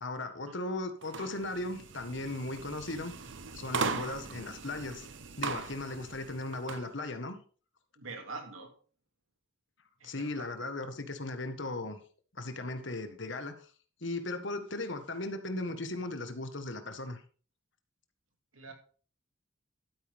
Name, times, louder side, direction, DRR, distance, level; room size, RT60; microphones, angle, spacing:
voice 1, 0.0-3.1 3.5-5.1 5.4-7.3 10.0-12.0 12.3-13.7 14.0-17.2, left 2 dB, 65° left, 8 dB, 1.5 m, -37 dB
sound 1, 1.0-6.9, right 4 dB, 65° right, 0.9 m, -39 dB
voice 2, 8.0-8.7 10.0-10.5 18.5-18.7, right 3 dB, 85° right, 4 dB, 2.7 m, -44 dB
12.5 x 9.5 x 3.6 m, 0.41 s
head